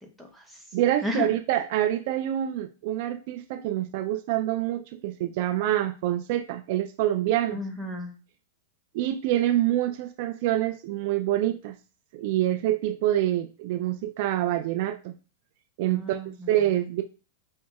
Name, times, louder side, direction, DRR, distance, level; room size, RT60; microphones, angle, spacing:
voice 1, 0.0-0.6 1.0-1.3 7.5-8.1 15.9-16.8, left 2 dB, ahead, 2 dB, 0.9 m, -34 dB
voice 2, 0.7-7.6 8.9-11.7 12.1-15.1 15.8-16.2 16.5-17.0, right 13 dB, 55° right, 7 dB, 0.3 m, -26 dB
5.2 x 2.8 x 2.3 m, 0.34 s
hypercardioid pair, 140°, 0 cm